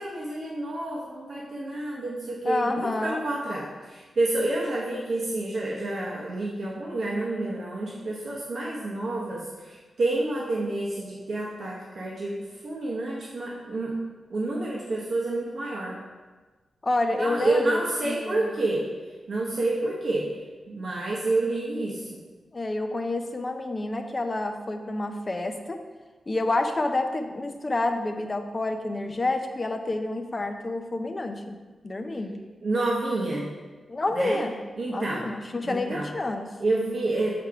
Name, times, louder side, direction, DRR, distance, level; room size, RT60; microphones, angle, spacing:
voice 1, 0.0-14.0 14.3-16.0 17.2-18.9 19.3-20.3 20.7-22.1 32.6-33.5 34.1-34.4 34.8-35.3 35.6-36.1 36.6-37.4, right 2 dB, 55° right, -4 dB, 0.9 m, -29 dB
voice 2, 2.4-3.2 16.8-18.5 22.5-25.8 26.3-31.6 31.8-32.4 33.9-34.6 34.9-36.5, left 2 dB, 25° left, 5 dB, 0.5 m, -29 dB
6.9 x 3.4 x 4.8 m, 1.3 s
wide cardioid pair, 150°, 0 cm